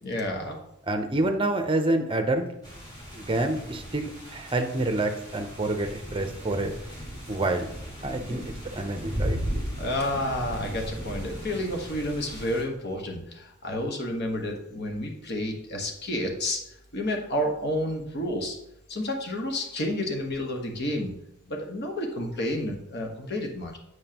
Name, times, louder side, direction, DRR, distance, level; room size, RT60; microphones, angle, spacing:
voice 1, 0.0-0.6 8.2-8.4 9.8-16.6 16.9-18.6 18.9-21.1 21.5-23.8, left 1 dB, 55° left, 2 dB, 1.3 m, -30 dB
voice 2, 0.9-2.5 3.1-6.8 7.3-7.7 8.0-8.4 8.7-9.4, right 2 dB, 25° right, 5 dB, 0.6 m, -27 dB
sound 1, 2.6-12.6, equal, 20° left, 2.2 m, -36 dB
7.2 x 6.2 x 2.9 m, 0.81 s
head